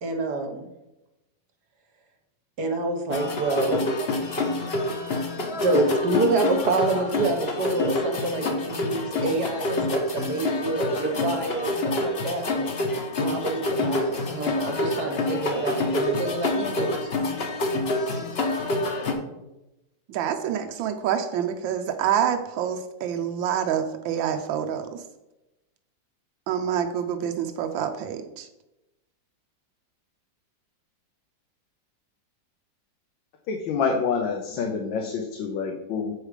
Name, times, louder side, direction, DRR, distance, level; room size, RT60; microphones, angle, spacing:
voice 1, 0.0-0.7 2.6-3.9 5.4-12.7 13.2-17.1, right 2 dB, 60° right, 4 dB, 1.6 m, -27 dB
sound 1, 3.1-19.1, left 2 dB, 40° left, 1.0 m, -27 dB
voice 2, 20.1-25.0 26.5-28.5, right 9 dB, 85° right, 6 dB, 1.4 m, -27 dB
voice 3, 33.5-36.1, left 5 dB, 85° left, 2 dB, 1.6 m, -27 dB
7.8 x 4.9 x 4.9 m, 0.96 s
omnidirectional pair, 2.0 m